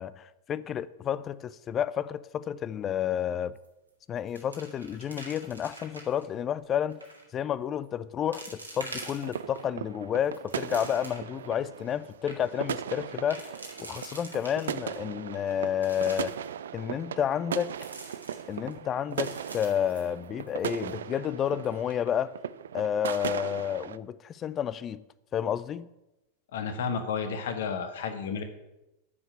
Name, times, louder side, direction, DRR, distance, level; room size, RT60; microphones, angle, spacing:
voice 1, 0.0-3.5 4.1-7.0 7.3-13.5 13.8-16.4 16.7-17.7 18.5-22.4 22.7-25.0 25.3-25.9, left 9 dB, 25° left, 0.4 m, -30 dB
sound 1, 3.6-3.9 4.2-6.2 6.9-7.3 7.8-7.9 8.3-9.6 10.1-11.4 11.8-11.9 12.1-12.4 13.1-15.0 15.5-16.4 17.6-18.7 19.1-20.6 20.9-21.0 21.5-21.7, right 2 dB, 80° right, 1.9 m, -45 dB
sound 2, 8.9-24.0, right 9 dB, 65° right, 0.4 m, -38 dB
voice 2, 26.5-28.4, left 6 dB, 60° left, 1.5 m, -32 dB
9.6 x 5.9 x 8.2 m
figure-of-eight pair, 90°, 0 cm